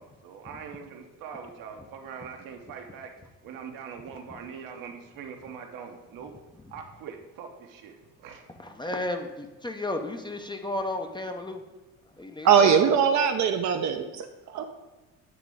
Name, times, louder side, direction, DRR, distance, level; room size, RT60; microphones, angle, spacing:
voice 1, 0.0-3.1 3.4-6.3 6.7-8.5, right 6 dB, 70° right, 3 dB, 1.0 m, -42 dB
voice 2, 8.6-11.6 12.2-12.8, left 1 dB, 15° left, 5 dB, 0.5 m, -33 dB
voice 3, 12.4-14.7, right 7 dB, 55° right, 5 dB, 0.6 m, -21 dB
8.6 x 2.9 x 4.9 m, 1.2 s
supercardioid pair, 80°, 35 cm